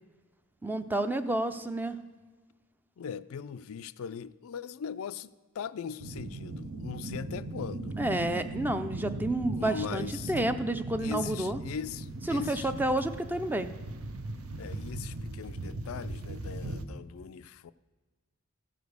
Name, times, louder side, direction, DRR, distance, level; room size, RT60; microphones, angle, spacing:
voice 1, 0.6-2.0 8.0-11.6 12.3-13.7, right 1 dB, 10° right, 0.4 m, -30 dB
voice 2, 3.0-8.0 9.5-10.3 11.0-12.7 14.6-17.7, left 7 dB, 70° left, 0.4 m, -40 dB
sound 1, 6.0-16.9, right 2 dB, 75° right, 0.9 m, -38 dB
14.5 x 5.2 x 7.9 m
head